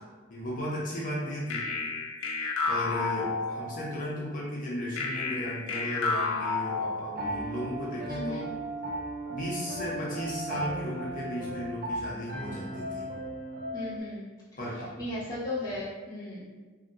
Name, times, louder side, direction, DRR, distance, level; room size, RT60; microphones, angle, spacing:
voice 1, 0.3-1.7 2.7-8.5 9.3-13.1 14.6-14.9, equal, 40° left, -6 dB, 0.7 m, -35 dB
sound 1, 1.5-4.0 5.0-7.5, left 4 dB, 90° left, 0.4 m, -31 dB
Piano, 7.2-14.0, right 1 dB, 45° right, 0.4 m, -36 dB
voice 2, 8.1-8.5 13.7-14.3 15.0-16.5, left 1 dB, 20° left, -11 dB, 1.3 m, -35 dB
2.8 x 2.7 x 2.5 m, 1.4 s
head